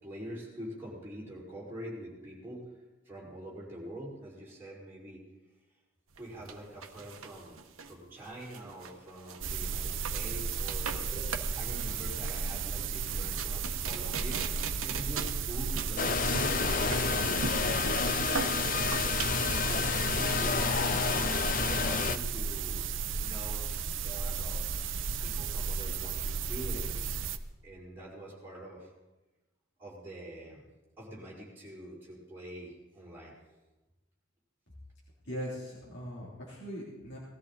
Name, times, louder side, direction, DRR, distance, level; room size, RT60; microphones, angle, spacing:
voice 1, 0.0-2.6 3.0-5.2 6.2-7.6 7.8-14.4 14.8-17.8 18.7-20.9 21.6-22.8 23.2-23.6 23.9-24.6 25.2-27.1 27.6-28.9 29.8-30.7 31.0-33.3, right 1 dB, 10° right, -6 dB, 5.2 m, -45 dB
sound 1, 6.1-19.8, right 5 dB, 85° right, 1.1 m, -40 dB
sound 2, 9.4-27.4, right 5 dB, 65° right, 0.7 m, -34 dB
sound 3, 16.0-22.2, left 5 dB, 40° left, 0.5 m, -29 dB
voice 2, 35.2-37.2, equal, 60° left, -6 dB, 3.4 m, -40 dB
19.5 x 13.5 x 4.1 m, 1.1 s
head